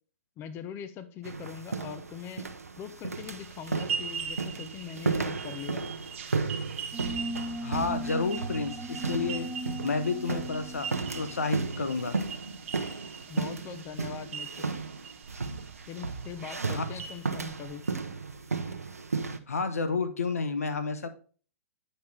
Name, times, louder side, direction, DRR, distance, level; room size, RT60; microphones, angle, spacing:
voice 1, 0.4-2.5 2.8-5.8 13.3-14.6 15.9-17.8, left 8 dB, 30° left, 11 dB, 0.8 m, -42 dB
sound 1, 1.2-19.4, right 4 dB, 85° right, 0.8 m, -35 dB
sound 2, 3.1-17.9, right 7 dB, 55° right, 1.3 m, -42 dB
sound 3, 6.9-12.1, equal, 10° right, 0.8 m, -38 dB
voice 2, 7.6-9.5 9.8-12.2 16.7-16.8 19.5-21.1, left 4 dB, 80° left, 10 dB, 1.1 m, -30 dB
9.1 x 5.5 x 3.4 m, 0.39 s
figure-of-eight pair, 110°, 8 cm